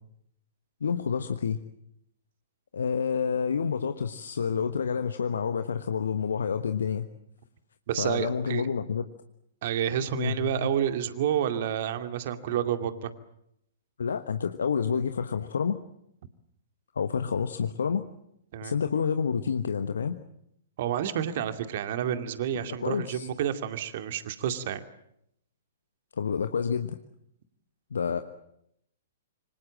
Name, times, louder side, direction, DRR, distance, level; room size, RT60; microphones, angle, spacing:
voice 1, 0.8-1.6 2.7-7.0 8.0-9.1 10.1-10.7 14.0-15.8 16.9-18.0 18.6-20.2 22.5-23.3 26.2-27.0 27.9-28.2, left 6 dB, 65° left, 8 dB, 1.3 m, -28 dB
voice 2, 7.9-8.7 9.6-13.1 18.5-18.8 20.8-24.8, right 10 dB, 50° right, 8 dB, 2.4 m, -29 dB
27.0 x 25.5 x 7.5 m, 0.77 s
figure-of-eight pair, 110°, 0 cm